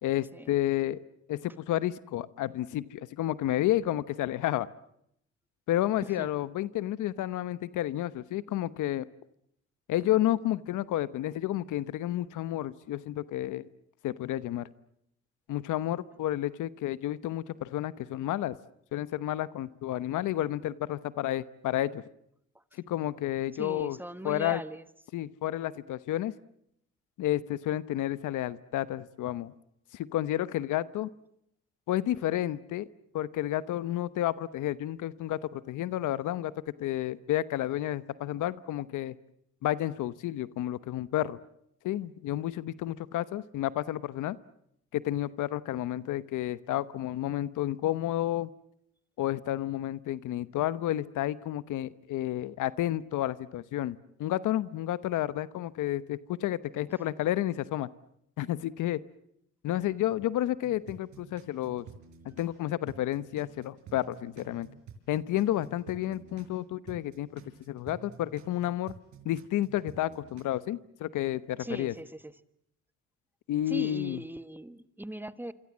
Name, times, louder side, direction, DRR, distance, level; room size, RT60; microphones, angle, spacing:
voice 1, 0.0-1.0 1.3-4.7 5.7-9.1 9.9-13.7 14.0-14.7 15.5-18.6 18.9-22.0 22.9-24.0 24.2-24.6 25.1-26.3 27.2-29.5 29.9-31.1 31.9-32.9 33.1-36.5 36.8-39.1 39.6-41.4 41.8-44.4 44.9-48.5 49.2-57.9 58.4-59.0 59.6-61.8 62.2-64.7 65.1-67.4 67.7-68.9 69.2-71.9 73.5-74.2, left 13 dB, 80° left, 16 dB, 1.0 m, -31 dB
voice 2, 23.6-24.8 71.6-72.3 73.7-75.5, right 1 dB, 5° right, 13 dB, 1.4 m, -39 dB
sound 1, 60.6-62.6 62.9-66.6 66.9-70.4, right 6 dB, 70° right, 5.8 m, -50 dB
27.0 x 26.0 x 7.4 m, 0.74 s
cardioid pair, 90°, 30 cm